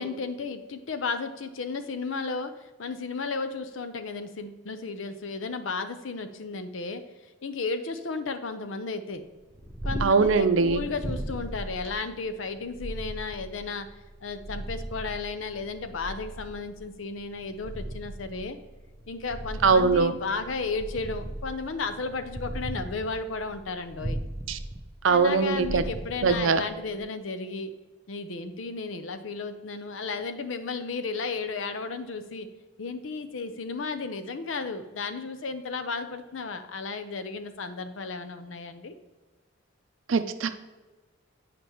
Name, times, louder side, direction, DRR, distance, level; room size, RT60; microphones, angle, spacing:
voice 1, 0.0-9.2 9.8-13.9 14.2-18.6 19.1-24.2 25.1-27.7 28.1-32.5 32.8-38.9, left 4 dB, 75° left, 9 dB, 0.6 m, -34 dB
Purr, 9.3-27.0, right 1 dB, 20° right, 0.5 m, -38 dB
voice 2, 10.0-10.8 19.6-20.1 24.5-24.6 25.0-25.8 26.2-26.6 40.1-40.5, right 4 dB, 75° right, 10 dB, 0.5 m, -21 dB
9.1 x 5.0 x 3.0 m, 1.3 s
head